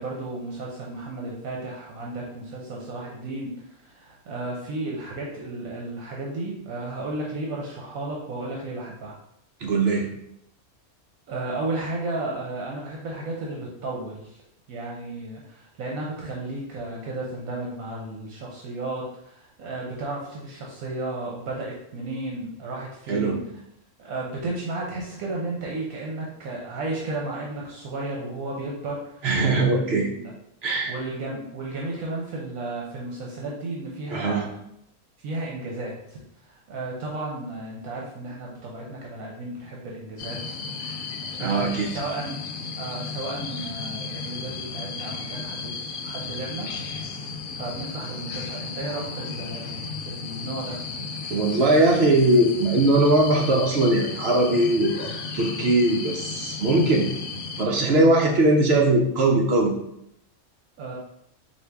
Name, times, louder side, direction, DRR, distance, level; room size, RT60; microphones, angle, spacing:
voice 1, 0.0-9.1 11.3-14.4 14.7-23.4 24.0-29.3 29.6-30.3 30.9-34.5 35.2-40.4 40.9-42.4 42.8-45.7 46.0-46.7 47.6-49.8 50.0-50.8 60.8-61.0, right 2 dB, 75° right, -3 dB, 1.2 m, -33 dB
voice 2, 9.6-10.1 23.1-23.4 29.2-30.1 30.6-30.9 34.1-34.4 41.4-41.9 51.3-57.1 57.6-59.7, right 2 dB, 55° right, 0 dB, 0.8 m, -20 dB
sound 1, 40.2-57.7, left 4 dB, 80° left, 1.0 m, -34 dB
4.2 x 2.7 x 3.4 m, 0.76 s
omnidirectional pair, 1.5 m